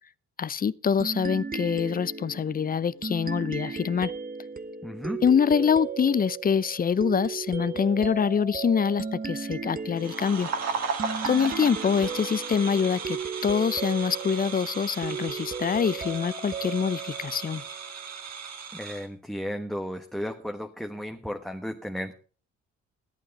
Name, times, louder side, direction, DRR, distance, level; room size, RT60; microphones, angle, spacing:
voice 1, 0.4-4.1 5.2-10.5 11.3-17.6, left 7 dB, 30° left, 0.6 m, -25 dB
sound 1, 1.0-18.2, right 5 dB, 30° right, 1.2 m, -36 dB
voice 2, 4.8-5.2 18.7-22.1, equal, ahead, 1.2 m, -34 dB
sound 2, 10.0-19.1, right 5 dB, 60° right, 2.5 m, -36 dB
14.0 x 11.5 x 5.3 m
cardioid pair, 90°, 30 cm